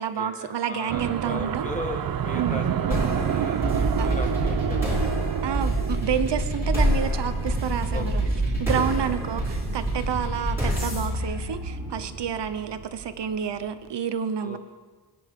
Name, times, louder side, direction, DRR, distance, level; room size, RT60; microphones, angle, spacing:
voice 1, 0.0-1.7 2.3-2.6 4.0-4.2 5.4-8.2 8.6-14.6, right 8 dB, 75° right, 11 dB, 0.9 m, -29 dB
voice 2, 0.7-5.0 7.9-8.3 8.7-8.9 14.4-14.6, left 1 dB, 15° left, 2 dB, 1.6 m, -37 dB
sound 1, 0.9-13.5, right 9 dB, 55° right, 0.5 m, -30 dB
sound 2, 2.9-12.3, equal, 5° right, 4.9 m, -27 dB
22.0 x 10.5 x 3.7 m, 1.4 s
wide cardioid pair, 180°, 42 cm